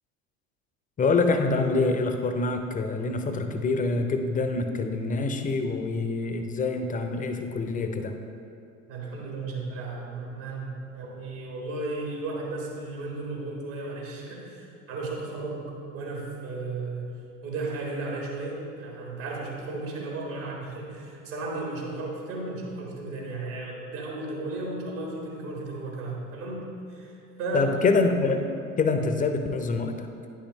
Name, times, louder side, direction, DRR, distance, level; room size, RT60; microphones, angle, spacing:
voice 1, 1.0-8.1 27.5-28.5 28.8-30.1, left 3 dB, 20° left, 6 dB, 0.6 m, -25 dB
voice 2, 8.9-17.1 17.4-27.7, right 2 dB, 65° right, -2 dB, 1.7 m, -34 dB
9.8 x 5.5 x 3.1 m, 2.5 s
figure-of-eight pair, 60°, 41 cm